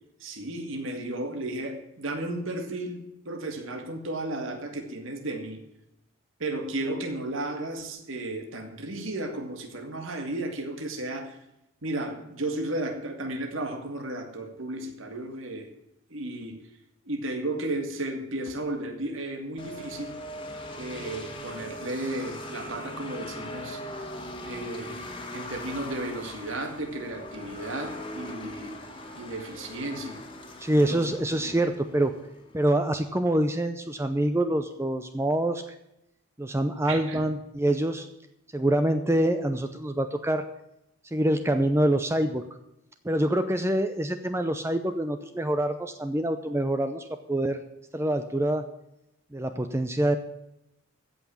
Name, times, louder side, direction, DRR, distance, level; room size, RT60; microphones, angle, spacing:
voice 1, 0.2-5.6 6.4-11.4 11.8-15.7 16.1-16.6 17.1-20.1 20.8-23.8 24.4-28.8 29.2-30.2 30.7-31.1 31.4-31.6 36.9-37.2, right 2 dB, 65° right, 4 dB, 2.0 m, -34 dB
sound 1, 19.6-32.6, left 1 dB, 25° left, 1.6 m, -40 dB
voice 2, 30.6-32.1 32.5-35.6 36.4-38.1 38.5-40.5 41.1-42.4 43.0-47.6 47.9-48.7 49.3-50.2, right 1 dB, 10° right, 8 dB, 0.6 m, -25 dB
15.5 x 5.9 x 8.5 m, 0.85 s
head